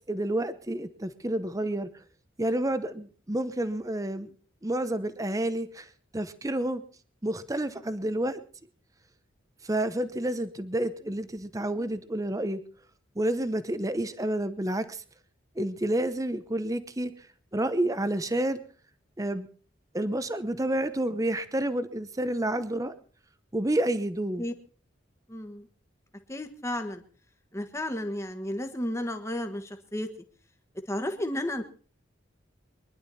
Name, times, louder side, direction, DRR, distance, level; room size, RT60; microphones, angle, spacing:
voice 1, 0.1-1.9 2.4-4.3 4.6-5.9 6.1-6.8 7.2-8.4 9.6-12.6 13.2-15.0 15.6-17.1 17.5-18.6 19.2-19.5 19.9-22.9 23.5-24.4, right 1 dB, 15° right, 12 dB, 0.8 m, -29 dB
voice 2, 25.3-25.7 26.3-27.0 27.5-30.1 30.9-31.6, left 1 dB, 15° left, 6 dB, 1.4 m, -32 dB
23.5 x 11.0 x 4.2 m, 0.42 s
head